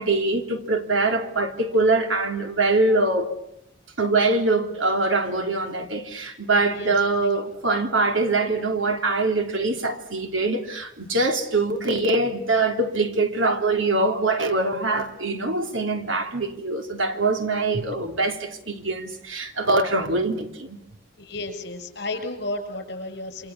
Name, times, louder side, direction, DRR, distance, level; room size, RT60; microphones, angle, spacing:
voice 1, 0.0-3.3 4.0-20.8, right 2 dB, 75° right, 3.3 m, -23 dB
voice 2, 6.7-7.5 21.2-23.5, left 2 dB, 55° left, 7.0 m, -33 dB
28.5 x 26.0 x 7.4 m
head